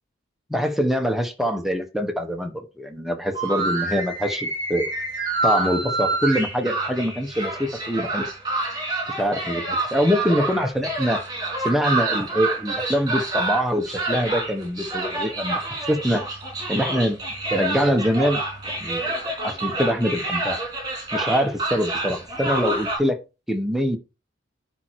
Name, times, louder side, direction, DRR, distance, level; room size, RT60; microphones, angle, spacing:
voice 1, 0.5-4.9 5.4-8.3 9.2-11.2 11.6-15.6 15.9-16.3 16.7-17.2 17.5-18.4 18.7-20.6 21.1-23.2 23.5-24.0, equal, ahead, 4 dB, 1.3 m, -24 dB
sound 1, 3.3-23.0, right 2 dB, 20° right, 4.1 m, -28 dB
11.0 x 4.5 x 4.7 m, 0.29 s
head